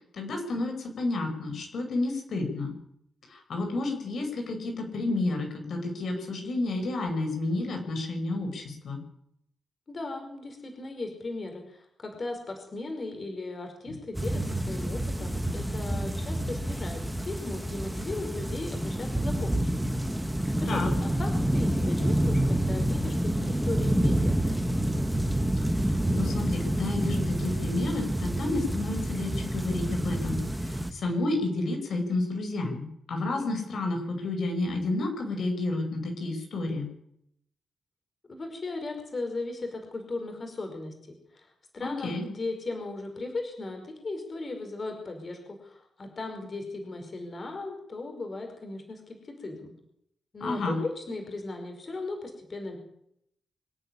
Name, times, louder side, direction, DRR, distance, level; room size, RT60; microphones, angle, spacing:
voice 1, 0.1-2.7 3.3-9.0 20.7-20.9 25.7-36.9 41.8-42.3 50.4-50.8, left 2 dB, 65° left, 4 dB, 5.4 m, -31 dB
voice 2, 9.9-19.7 20.6-24.4 38.3-40.9 41.3-49.7 50.3-52.8, left 2 dB, 35° left, 4 dB, 5.3 m, -37 dB
sound 1, 14.1-30.9, right 1 dB, 5° right, 1.6 m, -28 dB
26.0 x 10.0 x 10.0 m, 0.73 s
wide cardioid pair, 140°, 0 cm